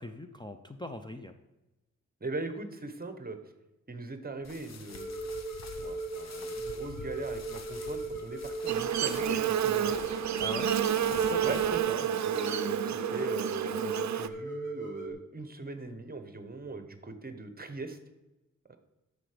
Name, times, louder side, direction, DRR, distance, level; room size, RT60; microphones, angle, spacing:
voice 1, 0.0-1.3 10.4-10.8 11.3-11.6 13.1-13.2, left 1 dB, 15° left, 7 dB, 0.6 m, -41 dB
voice 2, 2.2-3.4 3.9-5.1 5.8-10.0 11.4-18.0 18.7-18.8, right 3 dB, 30° right, 9 dB, 1.0 m, -40 dB
sound 1, 4.4-11.8, left 4 dB, 60° left, 0.9 m, -48 dB
sound 2, 4.9-15.1, right 2 dB, 80° left, 2.1 m, -38 dB
Buzz, 8.7-14.3, right 10 dB, 65° right, 0.5 m, -30 dB
10.0 x 6.8 x 5.0 m, 1.0 s
wide cardioid pair, 105°, 30 cm